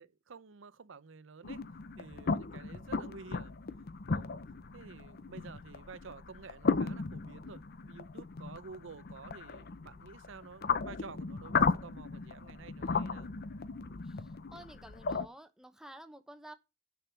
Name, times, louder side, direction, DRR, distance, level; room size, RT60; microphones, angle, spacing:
voice 1, 0.0-1.6 2.0-3.5 4.1-4.3 4.7-13.3, right 4 dB, 70° right, 0.7 m, -51 dB
sound 1, 1.4-15.3, left 4 dB, 50° left, 0.7 m, -36 dB
voice 2, 14.0-16.5, right 1 dB, 5° right, 1.0 m, -51 dB
8.8 x 6.8 x 5.9 m
head